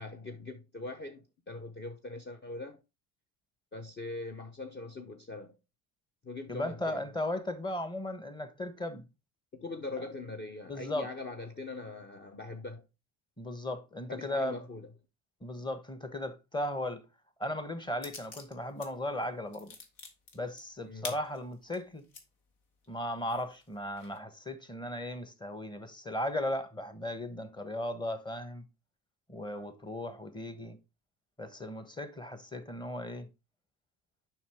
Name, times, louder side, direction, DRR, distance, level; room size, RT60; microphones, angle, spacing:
voice 1, 0.0-2.8 3.7-5.5 6.2-7.0 9.5-12.9 14.1-14.9 20.8-21.1, left 3 dB, 25° left, 0.8 m, -42 dB
voice 2, 6.5-9.0 10.7-11.1 13.4-14.6 15.4-17.0 17.4-19.8 20.3-22.0 22.9-28.6 29.3-30.8 31.4-33.3, left 1 dB, 10° left, 1.2 m, -36 dB
sound 1, 18.0-18.9 19.2-22.2 22.8-22.9 23.3-24.2, left 4 dB, 85° left, 1.8 m, -46 dB
7.1 x 5.6 x 3.5 m
cardioid pair, 100°, 39 cm